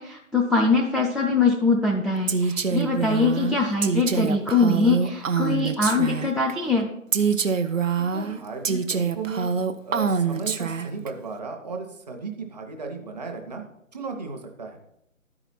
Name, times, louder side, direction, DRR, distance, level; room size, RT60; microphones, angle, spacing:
voice 1, 0.0-6.9, left 3 dB, ahead, -1 dB, 0.3 m, -22 dB
Female speech woman speaking, 2.3-6.5 7.1-11.1, right 6 dB, 65° right, 0.7 m, -25 dB
voice 2, 8.1-9.5 9.8-13.6 13.9-14.8, right 4 dB, 30° right, 3 dB, 0.9 m, -35 dB
12.0 x 4.9 x 4.1 m, 0.78 s
figure-of-eight pair, 145°, 42 cm